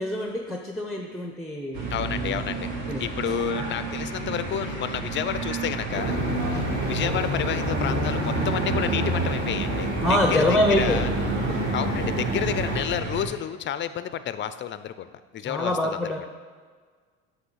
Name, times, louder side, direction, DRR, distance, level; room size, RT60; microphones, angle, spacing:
voice 1, 0.0-1.9 2.2-2.5 2.9-3.0 10.0-11.0 11.5-11.7 15.4-16.2, left 1 dB, ahead, 1 dB, 0.7 m, -25 dB
sound 1, 1.7-13.3, right 2 dB, 55° right, 1.9 m, -30 dB
voice 2, 1.9-2.7 3.0-6.2 6.5-11.1 11.5-15.1 15.3-16.1, left 10 dB, 35° left, 12 dB, 0.5 m, -30 dB
sound 2, 5.9-12.8, right 1 dB, 35° right, 1.6 m, -28 dB
7.7 x 3.3 x 6.2 m, 1.5 s
supercardioid pair, 85°, 33 cm